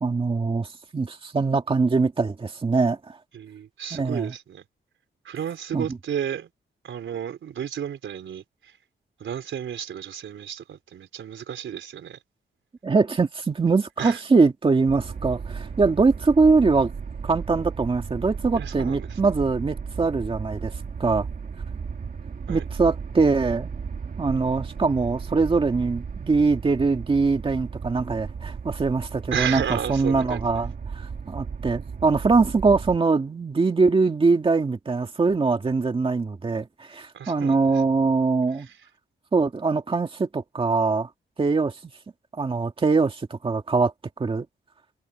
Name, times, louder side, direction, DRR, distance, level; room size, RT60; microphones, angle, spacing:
voice 1, 0.0-3.2 3.9-4.3 5.7-5.8 12.8-16.9 17.2-20.7 21.0-21.3 22.5-23.7 24.2-38.7 39.3-41.1 41.4-41.8 42.3-43.9 44.2-44.5, right 4 dB, 30° right, 2.1 m, -22 dB
voice 2, 3.3-4.6 5.2-6.5 6.8-8.7 9.2-12.2 14.0-14.2 18.5-19.2 22.5-22.6 29.3-30.5 37.1-37.6 38.6-38.7, right 9 dB, 85° right, 4.1 m, -32 dB
sound 1, 14.9-33.0, right 5 dB, 45° right, 2.0 m, -35 dB
wide cardioid pair, 155°, 19 cm